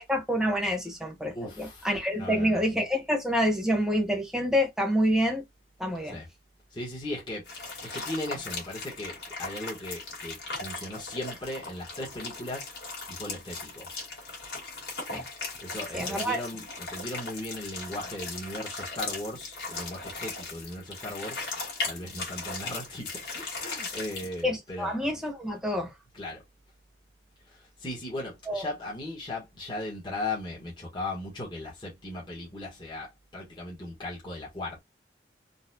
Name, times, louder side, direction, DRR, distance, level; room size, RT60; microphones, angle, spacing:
voice 1, 0.0-5.4 5.8-6.2 15.1-15.2 15.9-16.4 24.4-25.9 28.5-28.7, equal, 5° right, 1.1 m, -27 dB
voice 2, 1.3-2.6 6.0-6.3 6.7-13.9 15.6-21.4 21.8-25.0 26.1-26.4 27.5-34.8, left 1 dB, 25° left, 1.3 m, -37 dB
sound 1, 7.5-24.4, left 3 dB, 70° left, 1.9 m, -38 dB
4.0 x 2.3 x 2.7 m
head